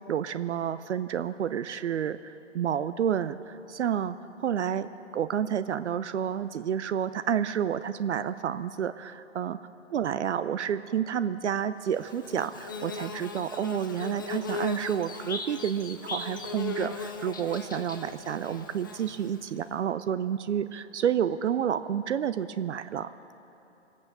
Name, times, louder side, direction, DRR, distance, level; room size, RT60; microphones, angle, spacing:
voice 1, 0.1-9.6 9.9-23.1, right 9 dB, 70° right, 12 dB, 0.6 m, -30 dB
Bird / Buzz, 11.9-19.6, left 4 dB, 20° left, 0.4 m, -38 dB
22.5 x 8.5 x 6.5 m, 2.9 s
hypercardioid pair, 140°, 37 cm